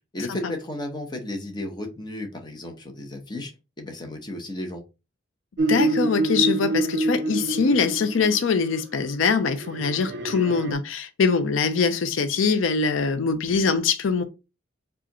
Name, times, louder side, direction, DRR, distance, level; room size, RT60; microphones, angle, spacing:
voice 1, 0.1-3.5 3.8-4.8, left 1 dB, 20° left, 0.8 m, -33 dB
sound 1, 5.6-8.5 9.5-10.7, right 2 dB, 60° right, 0.5 m, -26 dB
voice 2, 5.7-14.2, left 5 dB, 85° left, 0.5 m, -23 dB
4.8 x 2.4 x 3.0 m
head